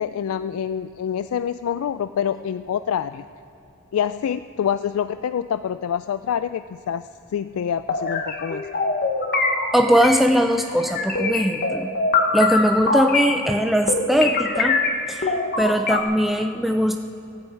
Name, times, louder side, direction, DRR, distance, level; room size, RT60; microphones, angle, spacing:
voice 1, 0.0-3.3 3.9-8.7, left 8 dB, 75° left, 12 dB, 0.3 m, -26 dB
sound 1, 7.9-10.2 10.6-13.4 13.9-16.0, left 3 dB, 45° left, 1.2 m, -23 dB
voice 2, 9.7-11.9 12.3-14.8 15.1-17.0, equal, ahead, 5 dB, 0.4 m, -20 dB
16.5 x 15.0 x 4.6 m, 2.7 s
head